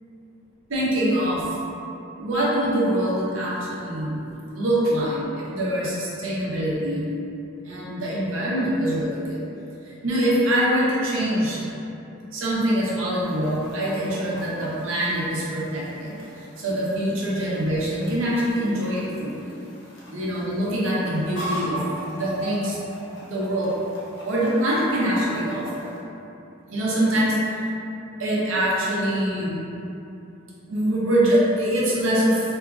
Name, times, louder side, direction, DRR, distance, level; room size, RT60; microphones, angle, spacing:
voice 1, 0.7-1.4 2.2-4.2 4.6-7.1 7.6-9.5 10.0-11.7 12.3-16.2 16.6-19.6 20.1-22.8 23.2-23.7 24.2-25.9 26.7-27.5 28.2-29.6 30.7-32.4, right 1 dB, 80° right, -6 dB, 0.6 m, -24 dB
Chicken rooster, 13.1-26.0, right 1 dB, 75° left, 0.7 m, -40 dB
2.9 x 2.4 x 2.4 m, 2.8 s
head